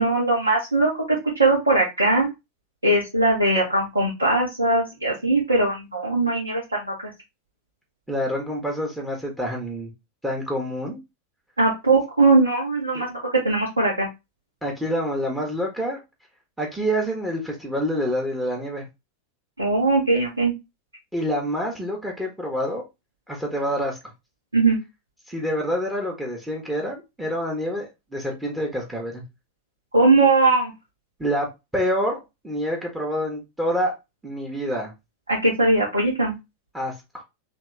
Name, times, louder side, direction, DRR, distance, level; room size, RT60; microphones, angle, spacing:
voice 1, 0.0-2.3 2.8-7.1 11.6-13.2 13.4-14.1 19.6-20.5 24.5-24.8 29.9-30.7 35.3-36.3, right 2 dB, 80° right, 1.2 m, -20 dB
voice 2, 8.1-9.9 10.2-11.0 12.9-13.0 14.6-16.0 16.6-18.8 21.1-22.9 23.3-24.0 25.3-29.2 31.2-31.5 31.7-33.9 34.2-34.9 36.7-37.2, equal, 5° right, 1.1 m, -27 dB
3.5 x 2.8 x 3.3 m
figure-of-eight pair, 90°, 0 cm